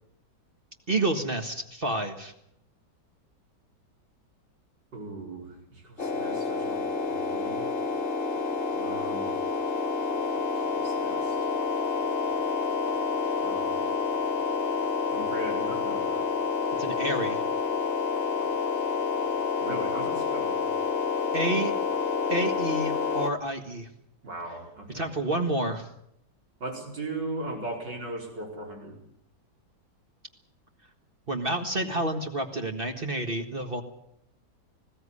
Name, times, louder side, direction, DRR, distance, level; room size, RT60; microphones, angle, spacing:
voice 1, 0.9-2.3 16.8-17.4 21.3-21.7 22.3-23.9 24.9-25.9 31.3-33.8, right 1 dB, 30° right, 4 dB, 1.8 m, -29 dB
voice 2, 4.9-7.7 8.7-9.3 10.5-11.5 13.4-13.9 15.1-16.2 19.6-20.7 24.2-25.2 26.6-29.0, right 2 dB, 85° right, 1 dB, 5.4 m, -38 dB
sound 1, 6.0-23.3, left 5 dB, 40° left, 1.3 m, -28 dB
20.0 x 16.0 x 9.8 m, 0.74 s
omnidirectional pair, 1.9 m